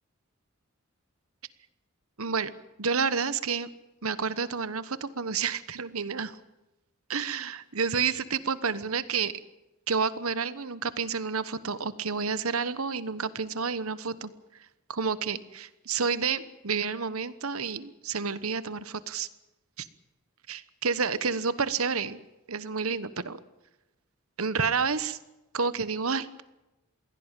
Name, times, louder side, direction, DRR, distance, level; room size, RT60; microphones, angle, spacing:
voice 1, 2.2-2.5 2.8-3.7 4.0-6.4 7.1-9.3 9.9-14.3 14.9-19.3 19.8-19.9 20.5-22.2 22.5-23.4 24.4-25.2 25.5-26.4, right 5 dB, 80° right, 14 dB, 1.2 m, -30 dB
22.0 x 17.0 x 9.1 m, 1.0 s
head